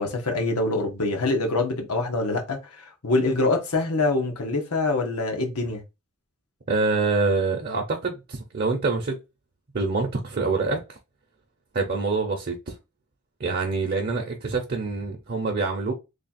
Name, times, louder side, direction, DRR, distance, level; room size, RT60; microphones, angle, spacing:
voice 1, 0.0-5.8, left 2 dB, 90° left, 1.2 m, -25 dB
voice 2, 6.7-9.2 9.7-11.0 11.7-12.8 13.4-15.9, right 3 dB, 45° right, 0.7 m, -26 dB
3.2 x 2.4 x 4.1 m
head